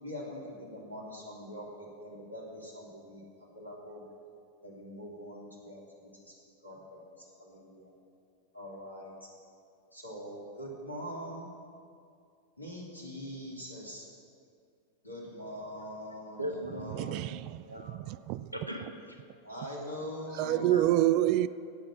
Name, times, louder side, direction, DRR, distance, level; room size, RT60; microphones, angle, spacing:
voice 1, 0.0-4.0 4.6-7.9 8.5-9.3 9.9-11.5 12.6-14.1 15.0-17.3 19.4-20.8, equal, 85° left, 3.0 m, -43 dB
voice 2, 16.4-18.1 18.5-19.4 20.4-21.0, equal, 90° right, 1.3 m, -40 dB
voice 3, 17.0-17.6 17.9-18.5 20.4-21.5, right 14 dB, 45° right, 0.3 m, -27 dB
17.5 x 7.6 x 5.9 m
figure-of-eight pair, 90°, 0 cm